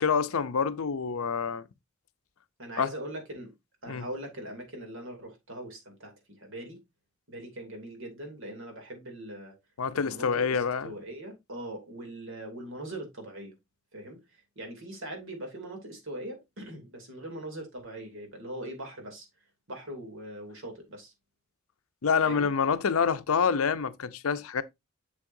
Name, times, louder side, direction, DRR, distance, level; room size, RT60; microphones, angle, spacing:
voice 1, 0.0-1.6 2.8-2.9 3.9-4.1 9.8-11.0 22.0-24.6, left 6 dB, 80° left, 0.6 m, -27 dB
voice 2, 2.6-3.5 3.8-6.8 7.3-9.6 9.9-13.5 13.9-19.3 19.7-21.1 22.2-22.5, right 1 dB, 65° right, 2.8 m, -41 dB
7.4 x 7.1 x 2.6 m
head